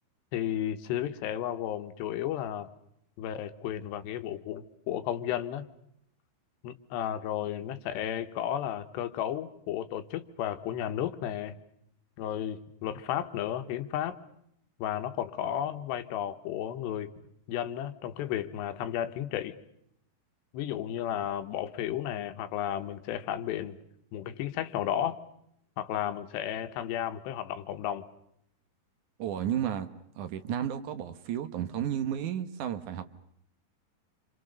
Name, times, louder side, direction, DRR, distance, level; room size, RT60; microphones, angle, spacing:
voice 1, 0.3-2.7 3.2-5.6 6.6-11.6 12.2-14.2 14.8-17.1 17.5-19.5 20.5-23.8 24.1-25.2 25.8-28.1, left 11 dB, 90° left, 3.4 m, -33 dB
voice 2, 29.2-29.9 30.2-33.0, right 9 dB, 65° right, 2.2 m, -32 dB
29.0 x 26.0 x 6.6 m
omnidirectional pair, 4.8 m